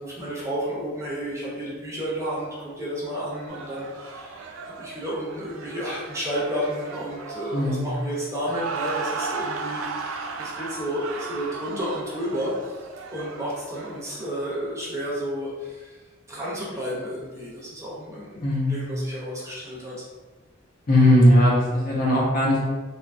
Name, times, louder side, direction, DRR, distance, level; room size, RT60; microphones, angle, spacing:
voice 1, 0.0-16.0 16.3-20.0, equal, 15° right, -7 dB, 0.6 m, -32 dB
sound 1, 3.5-14.7, right 4 dB, 80° right, 0.3 m, -36 dB
voice 2, 7.5-7.9 18.4-18.8 20.9-22.6, left 1 dB, 45° left, -4 dB, 0.6 m, -19 dB
2.9 x 2.2 x 2.5 m, 1.3 s
head